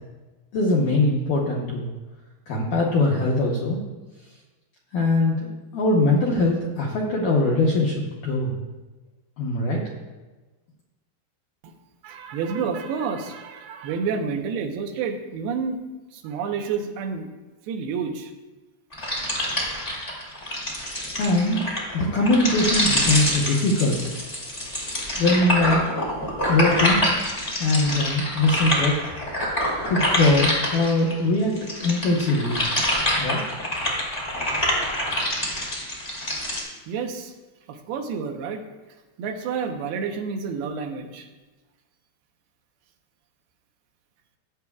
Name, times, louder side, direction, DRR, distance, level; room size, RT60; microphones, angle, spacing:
voice 1, 0.5-1.9 2.5-3.8 4.9-8.6 9.4-9.8 21.2-21.6 21.9-24.2 25.2-25.9 26.5-27.0 27.6-28.9 29.9-31.5 31.8-32.6 33.2-33.4, left 2 dB, 70° left, -3 dB, 2.1 m, -21 dB
voice 2, 12.0-15.8 16.1-17.3 17.7-18.3 36.9-37.3 37.7-38.6 39.2-41.3, right 5 dB, 75° right, 3 dB, 2.8 m, -29 dB
sound 1, 18.9-31.1 31.5-36.6, left 1 dB, 10° left, 2.0 m, -26 dB
17.0 x 8.1 x 2.4 m, 1.2 s
omnidirectional pair, 4.8 m